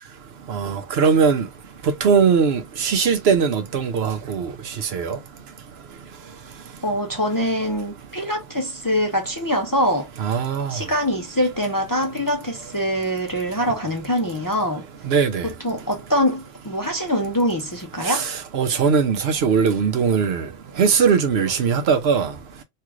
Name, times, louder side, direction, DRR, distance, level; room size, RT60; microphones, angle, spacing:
voice 1, 0.5-1.5 1.8-4.5 4.9-5.2 10.2-10.8 15.0-15.5 18.0-20.5 20.8-22.3, right 6 dB, 70° right, 0.9 m, -20 dB
voice 2, 6.8-10.1 10.7-14.8 15.6-18.3, equal, 25° left, 0.5 m, -24 dB
3.2 x 2.4 x 3.0 m
omnidirectional pair, 1.1 m